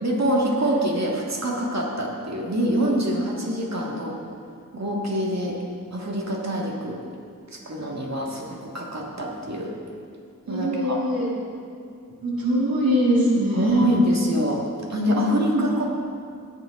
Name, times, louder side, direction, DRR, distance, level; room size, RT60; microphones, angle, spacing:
voice 1, 0.0-4.2 4.7-5.6 5.9-7.0 7.5-9.7 10.5-11.1 13.5-14.6 14.9-15.9, equal, 50° right, -2 dB, 2.0 m, -25 dB
voice 2, 10.5-11.2 12.2-13.8 15.1-15.7, equal, 90° right, -4 dB, 1.8 m, -22 dB
18.0 x 6.8 x 3.8 m, 2.2 s
wide cardioid pair, 40°, 34 cm